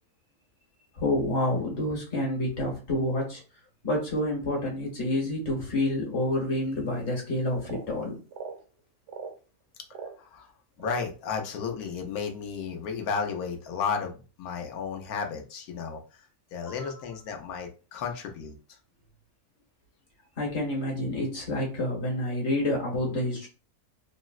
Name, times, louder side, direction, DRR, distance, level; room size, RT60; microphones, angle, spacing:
voice 1, 1.0-3.4 3.8-8.2 16.7-16.9 20.4-23.5, left 1 dB, 50° left, -2 dB, 1.4 m, -28 dB
sound 1, 7.6-7.9 8.3-8.6 9.1-9.4 9.9-10.2 10.8-11.1, right 5 dB, 65° right, 0.9 m, -40 dB
voice 2, 10.2-10.5 10.8-16.0 16.5-18.5, left 6 dB, 85° left, 3 dB, 1.2 m, -33 dB
3.7 x 2.0 x 2.3 m, 0.34 s
omnidirectional pair, 1.5 m